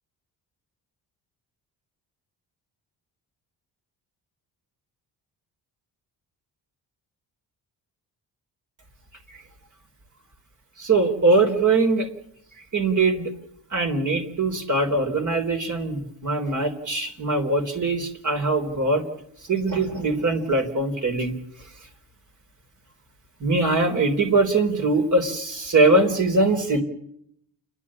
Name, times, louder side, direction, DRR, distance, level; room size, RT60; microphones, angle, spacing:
voice 1, 10.8-12.1 12.7-13.3 13.7-19.1 19.5-21.4 23.4-26.8, right 2 dB, 45° right, 5 dB, 3.8 m, -22 dB
30.0 x 11.0 x 8.6 m, 0.72 s
cardioid pair, 105°, 41 cm